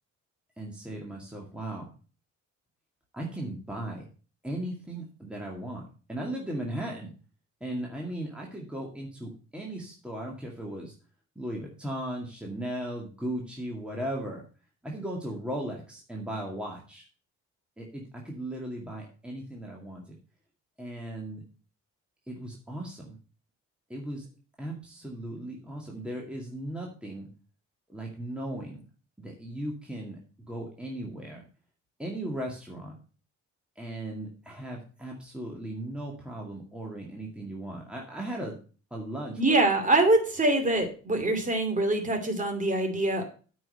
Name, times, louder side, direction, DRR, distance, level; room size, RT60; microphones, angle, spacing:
voice 1, 0.6-1.9 3.1-4.0 4.4-7.1 7.6-10.9 11.4-14.5 14.8-17.1 17.8-20.2 20.8-21.5 22.3-23.2 23.9-24.3 24.6-27.3 27.9-28.9 29.2-30.2 30.5-31.5 32.0-33.0 33.8-38.6 38.9-39.6, right 1 dB, 5° right, -2 dB, 2.1 m, -37 dB
voice 2, 39.4-43.2, right 2 dB, 25° right, 5 dB, 2.7 m, -24 dB
8.9 x 5.4 x 6.4 m, 0.38 s
cardioid pair, 90°, 30 cm